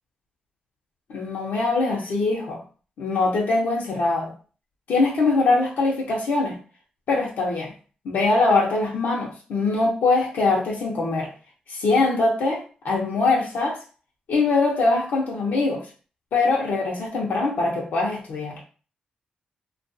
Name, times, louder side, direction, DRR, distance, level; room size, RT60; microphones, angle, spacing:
voice 1, 1.1-2.6 3.0-4.3 4.9-6.6 7.1-7.7 8.0-11.3 11.7-13.8 14.3-15.8 16.3-18.6, left 3 dB, 80° left, -2 dB, 0.8 m, -22 dB
2.4 x 2.3 x 2.6 m, 0.38 s
cardioid pair, 60°, 3 cm